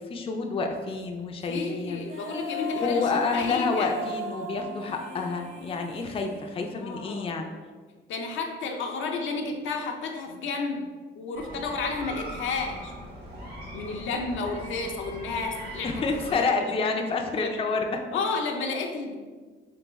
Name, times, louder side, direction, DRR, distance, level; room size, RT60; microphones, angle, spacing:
voice 1, 0.1-2.0 2.8-7.5 15.8-18.0, left 4 dB, 30° left, 3 dB, 0.4 m, -28 dB
voice 2, 1.5-3.9 4.8-4.9 6.8-7.4 8.1-10.9 11.1-12.9 13.7-16.0 16.3-16.8 17.3-17.5 18.1-19.2, left 4 dB, 75° left, 2 dB, 0.6 m, -32 dB
Female singing, 2.0-7.2, left 3 dB, 35° right, 0.8 m, -37 dB
sound 1, 11.3-16.3, right 1 dB, 50° right, 1.2 m, -40 dB
3.5 x 3.3 x 3.0 m, 1.4 s
cardioid pair, 90°, 20 cm